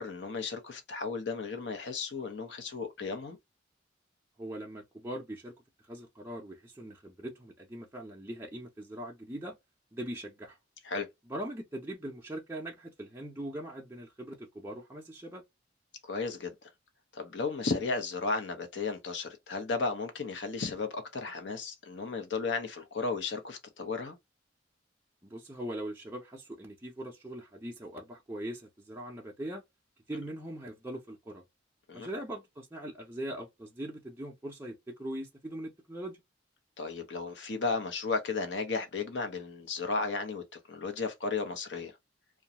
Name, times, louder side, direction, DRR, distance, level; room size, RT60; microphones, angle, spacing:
voice 1, 0.0-3.4 10.8-11.1 16.0-16.7 17.1-24.2 31.9-32.1 36.8-41.9, left 4 dB, 75° left, 0.7 m, -34 dB
voice 2, 4.4-5.5 5.8-9.6 9.9-10.6 11.3-15.4 25.2-29.6 30.1-31.4 31.9-36.2, right 1 dB, 15° right, 0.5 m, -41 dB
2.5 x 2.2 x 2.8 m
head